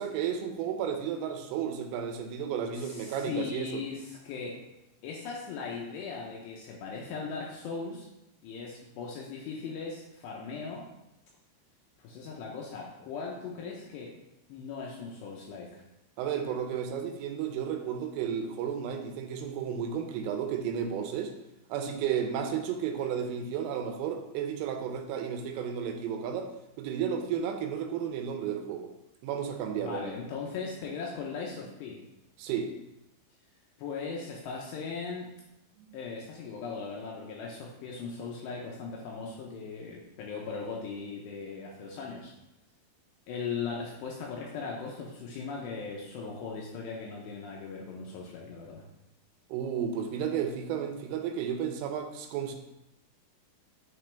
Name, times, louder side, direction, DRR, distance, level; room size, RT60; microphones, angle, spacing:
voice 1, 0.0-3.8 16.2-21.3 21.7-26.5 26.8-28.9 29.2-30.1 32.4-32.7 49.5-52.6, right 8 dB, 90° right, 5 dB, 3.3 m, -33 dB
voice 2, 2.7-4.6 5.0-8.1 8.4-10.8 12.0-14.1 14.5-15.8 29.8-32.0 33.8-35.3 35.9-42.3 43.3-48.8, left 5 dB, 80° left, -2 dB, 2.5 m, -38 dB
9.1 x 3.9 x 3.3 m, 0.89 s
omnidirectional pair, 5.6 m